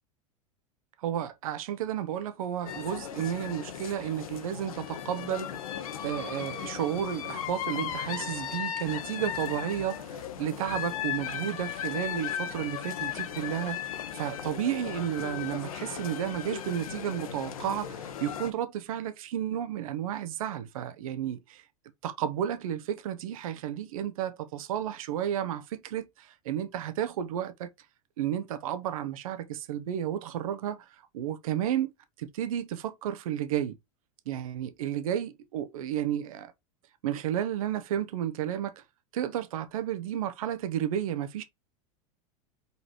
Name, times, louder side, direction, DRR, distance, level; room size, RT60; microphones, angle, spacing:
voice 1, 1.0-5.5 6.0-21.6 22.0-27.7 28.2-31.9 32.2-33.8 34.3-36.5 37.0-38.8 39.1-41.4, right 10 dB, 75° right, 1.1 m, -32 dB
sound 1, 2.7-18.5, left 9 dB, 80° left, 1.2 m, -36 dB
5.5 x 4.1 x 4.6 m
hypercardioid pair, 100°, 18 cm